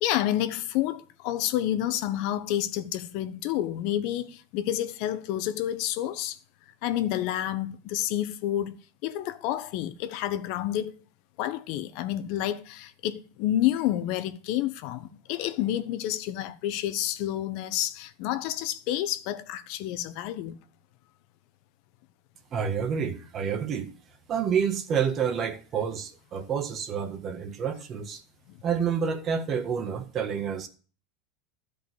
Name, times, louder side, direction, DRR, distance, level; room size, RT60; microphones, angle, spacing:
voice 1, 0.0-6.4 6.8-10.9 11.4-20.6 28.5-28.6, left 12 dB, 65° left, 1.1 m, -29 dB
voice 2, 22.5-23.9 24.3-28.2 28.6-30.7, right 7 dB, 40° right, 1.6 m, -29 dB
12.5 x 5.2 x 8.0 m
hypercardioid pair, 100°, 0 cm